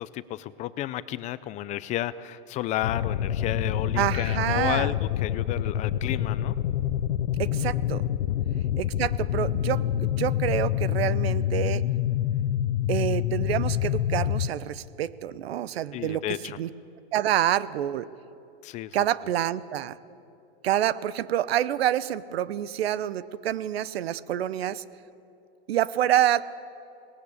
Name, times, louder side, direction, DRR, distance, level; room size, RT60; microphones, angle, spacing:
voice 1, 0.0-6.5 15.9-16.6 18.6-19.0, left 14 dB, 25° left, 16 dB, 0.4 m, -32 dB
sound 1, 2.8-14.5, left 11 dB, 85° left, 0.7 m, -27 dB
voice 2, 4.0-4.9 7.4-8.0 8.8-11.8 12.9-16.2 16.6-16.7 17.1-18.1 18.9-20.0 20.6-24.8 25.7-26.4, right 11 dB, 80° right, 18 dB, 0.9 m, -27 dB
19.0 x 18.0 x 8.5 m, 2.8 s
supercardioid pair, 140°, 30 cm